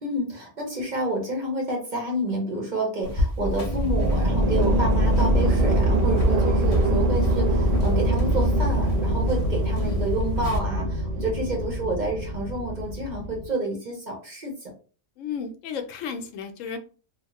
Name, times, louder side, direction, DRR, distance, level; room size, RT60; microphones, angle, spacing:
voice 1, 0.0-14.5, right 1 dB, 45° right, 0 dB, 0.8 m, -29 dB
sound 1, 3.0-10.6, left 1 dB, 45° left, 0.4 m, -33 dB
sound 2, 3.5-13.5, right 1 dB, 75° right, 1.1 m, -23 dB
voice 2, 15.2-16.8, left 6 dB, 85° left, 6 dB, 1.0 m, -34 dB
2.7 x 2.1 x 2.9 m, 0.37 s
omnidirectional pair, 1.3 m